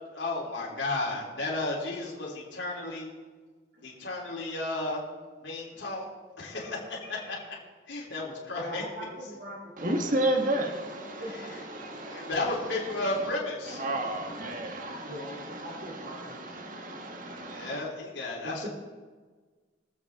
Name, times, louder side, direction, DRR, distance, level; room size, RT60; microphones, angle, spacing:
voice 1, 0.1-3.1 3.8-5.0 5.4-6.1 6.4-7.4 7.9-8.8 12.1-13.8 17.5-18.7, left 2 dB, 75° left, -3 dB, 3.4 m, -33 dB
voice 2, 8.6-10.5 11.2-11.5 11.8-11.9 15.0-16.5 17.1-17.2 18.4-18.7, right 1 dB, 65° right, -6 dB, 3.2 m, -42 dB
voice 3, 9.8-11.4 11.7-13.3 13.7-17.8, right 1 dB, 45° right, 3 dB, 1.5 m, -33 dB
23.5 x 8.1 x 3.6 m, 1.4 s
head